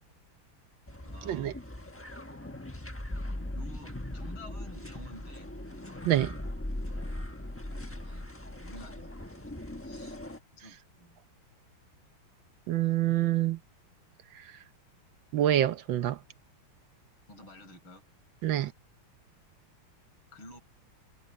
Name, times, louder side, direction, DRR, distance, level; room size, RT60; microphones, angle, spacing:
sound 1, 0.9-10.4, left 1 dB, 10° left, 0.7 m, -39 dB
voice 1, 1.0-1.6 3.5-5.5 8.0-10.2 10.5-11.2 17.3-18.0 20.3-20.6, left 1 dB, 75° left, 7.2 m, -51 dB
voice 2, 12.7-13.6 15.3-16.2 18.4-18.7, right 12 dB, 70° right, 1.4 m, -26 dB
omnidirectional pair, 2.3 m